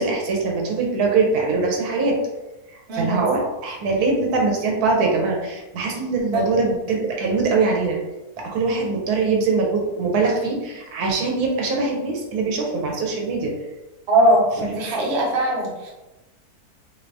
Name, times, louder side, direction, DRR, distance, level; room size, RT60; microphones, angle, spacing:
voice 1, 0.0-2.1 2.9-8.0 8.4-13.5 14.6-14.9, right 3 dB, 85° right, -1 dB, 1.2 m, -22 dB
voice 2, 2.9-3.3 6.3-6.4 14.1-15.9, right 1 dB, 55° right, -2 dB, 0.9 m, -20 dB
3.3 x 2.8 x 2.5 m, 1.1 s
omnidirectional pair, 1.6 m